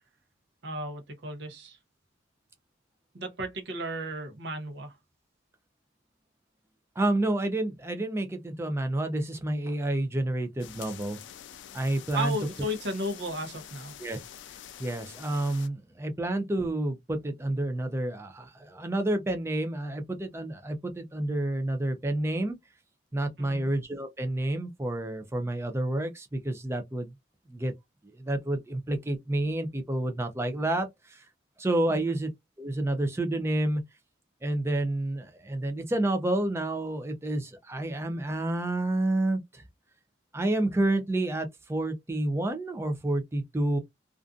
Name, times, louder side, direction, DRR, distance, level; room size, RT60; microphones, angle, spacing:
voice 1, 0.6-1.8 3.1-5.0 12.1-13.9 23.4-23.7 31.9-32.2, equal, 60° right, 0.7 m, -34 dB
voice 2, 7.0-11.2 11.7-12.4 14.0-14.2 14.8-22.6 23.1-27.1 27.5-27.7 28.2-31.2 31.6-32.3 32.6-33.8 34.4-39.6 40.3-43.8, right 1 dB, 15° right, 0.4 m, -29 dB
sound 1, 10.6-15.7, left 10 dB, 70° left, 0.3 m, -46 dB
2.4 x 2.4 x 2.3 m
head